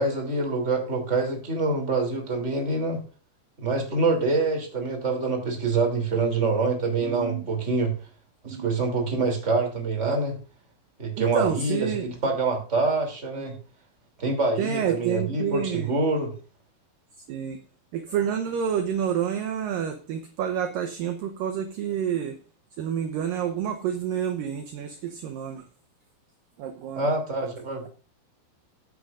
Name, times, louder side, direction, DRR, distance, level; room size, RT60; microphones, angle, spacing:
voice 1, 0.0-3.0 3.6-7.9 8.4-10.4 11.0-13.5 14.2-16.3 26.9-27.9, right 3 dB, 20° right, 3 dB, 2.8 m, -25 dB
voice 2, 7.0-7.4 8.5-8.7 11.2-12.0 13.4-13.5 14.6-15.9 17.3-17.6 17.9-22.4 22.8-25.6 26.6-27.1, right 8 dB, 75° right, 6 dB, 2.2 m, -29 dB
15.0 x 9.4 x 2.5 m, 0.36 s
omnidirectional pair, 4.8 m